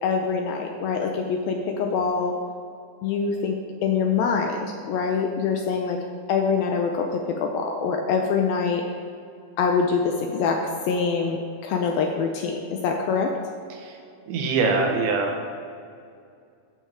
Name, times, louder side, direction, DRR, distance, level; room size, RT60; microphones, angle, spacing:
voice 1, 0.0-2.4 3.0-6.0 6.3-8.8 9.6-13.3, left 5 dB, 80° left, 3 dB, 2.1 m, -24 dB
voice 2, 14.3-15.4, right 4 dB, 80° right, 2 dB, 3.6 m, -23 dB
14.5 x 6.5 x 5.0 m, 2.4 s
omnidirectional pair, 5.1 m